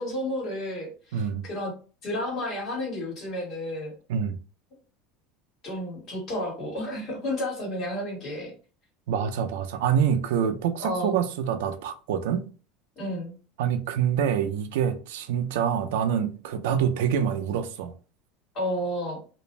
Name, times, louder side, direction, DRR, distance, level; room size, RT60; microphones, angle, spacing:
voice 1, 0.0-1.7 2.0-3.9 5.6-8.5 10.8-11.2 13.0-13.3 18.5-19.2, left 1 dB, 30° left, 1.4 m, -31 dB
voice 2, 1.1-1.4 4.1-4.4 9.1-12.4 13.6-17.9, right 8 dB, 80° right, 0.4 m, -26 dB
2.5 x 2.0 x 3.1 m
cardioid pair, 175°, 0 cm